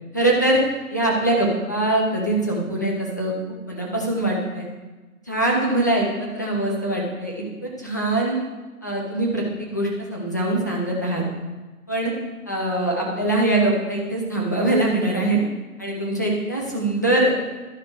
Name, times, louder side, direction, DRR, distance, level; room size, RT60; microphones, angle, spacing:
voice 1, 0.1-0.6 0.9-4.6 5.3-8.4 8.8-11.2 11.9-12.1 12.5-15.4 15.8-17.3, right 1 dB, 15° left, -2 dB, 0.5 m, -23 dB
11.5 x 5.0 x 4.5 m, 1.2 s
figure-of-eight pair, 140°, 46 cm